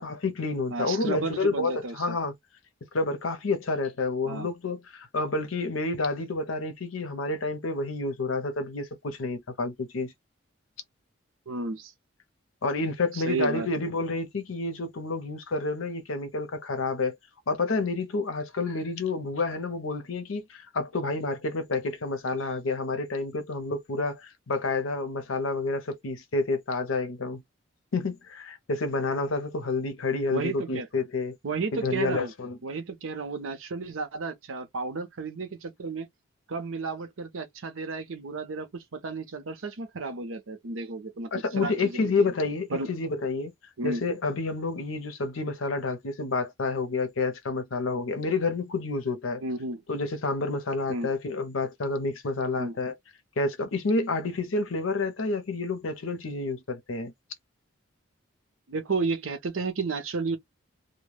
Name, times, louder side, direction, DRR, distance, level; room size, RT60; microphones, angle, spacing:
voice 1, 0.0-2.3 2.9-10.1 12.6-17.2 17.5-27.4 27.9-31.4 31.7-32.6 41.3-43.5 43.8-49.4 49.9-52.9 53.4-57.1, left 3 dB, 85° left, 0.7 m, -29 dB
voice 2, 0.7-2.2 4.2-4.5 11.5-11.9 13.1-13.7 30.3-30.9 31.4-32.3 32.6-36.1 36.5-42.3 42.7-42.9 43.8-44.0 49.4-49.8 50.9-51.1 52.5-52.8 58.7-60.4, right 4 dB, 85° right, 0.7 m, -32 dB
2.2 x 2.2 x 3.1 m
head